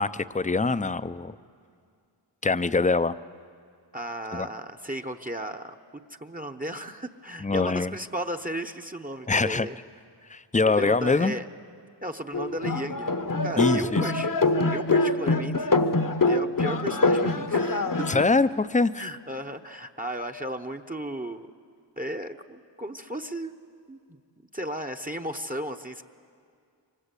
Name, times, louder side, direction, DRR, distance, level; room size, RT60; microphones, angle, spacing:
voice 1, 0.0-1.4 2.4-3.1 4.3-4.5 7.4-8.0 9.3-9.7 10.3-11.3 13.6-14.1 18.1-19.0, left 3 dB, 15° left, 14 dB, 0.6 m, -24 dB
voice 2, 3.9-5.8 6.1-9.7 10.6-11.5 12.0-13.1 13.4-14.3 14.7-15.7 16.3-18.2 19.0-21.5 22.0-23.5 23.9-24.2 24.5-26.0, right 1 dB, 20° right, 8 dB, 0.9 m, -35 dB
sound 1, 12.3-18.2, left 3 dB, 45° left, 1.1 m, -24 dB
27.5 x 24.5 x 8.3 m, 2.3 s
wide cardioid pair, 65°, 44 cm